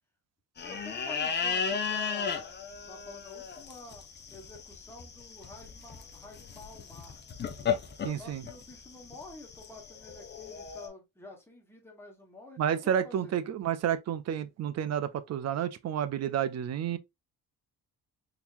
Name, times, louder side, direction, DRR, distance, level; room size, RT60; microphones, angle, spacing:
sound 1, 0.6-10.9, left 6 dB, 30° left, 0.6 m, -35 dB
voice 1, 0.6-2.5 2.9-7.2 8.1-13.4, left 2 dB, 5° left, 1.2 m, -49 dB
voice 2, 8.0-8.4 12.6-17.0, right 9 dB, 45° right, 0.5 m, -30 dB
3.9 x 2.9 x 2.5 m
cardioid pair, 135°, 36 cm